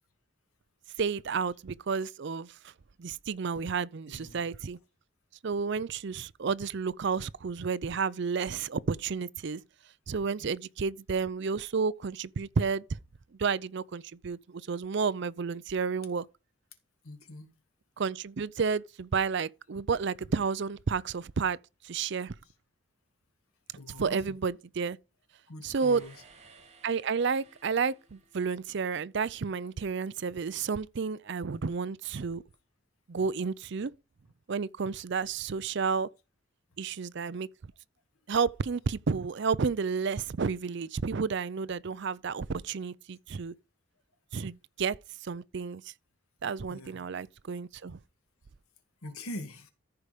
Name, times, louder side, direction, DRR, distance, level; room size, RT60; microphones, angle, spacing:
voice 1, 1.0-2.7 3.0-4.8 5.4-9.6 10.1-13.0 13.4-16.3 18.0-21.6 21.8-22.3 24.0-25.0 25.6-26.0 26.8-32.4 33.1-33.9 34.5-36.1 36.8-37.5 38.3-43.5 44.3-45.0 45.2-45.8 46.4-48.0, right 5 dB, 55° right, 0.5 m, -31 dB
voice 2, 4.1-4.4 10.4-10.5 17.0-17.5 23.8-24.4 25.5-26.2 46.7-47.1 49.0-49.7, left 1 dB, 90° left, 2.0 m, -43 dB
sound 1, 25.8-29.0, right 4 dB, 30° right, 2.5 m, -58 dB
14.0 x 4.9 x 5.1 m
head